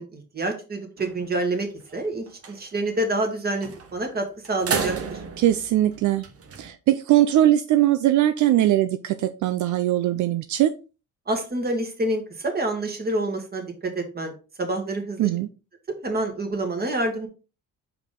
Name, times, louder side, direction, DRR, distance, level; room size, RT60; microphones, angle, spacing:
voice 1, 0.0-5.2 11.3-14.3 14.6-15.3 15.9-17.3, right 2 dB, 30° right, 4 dB, 2.1 m, -27 dB
sound 1, 1.0-1.5 1.9-2.0 2.3-2.6 3.6-4.0 4.5-6.7, right 5 dB, 50° right, 1.3 m, -32 dB
voice 2, 5.4-6.2 6.6-10.7 15.2-15.5, right 13 dB, 75° right, 10 dB, 0.5 m, -20 dB
5.4 x 4.7 x 3.7 m, 0.33 s
cardioid pair, 90°, 30 cm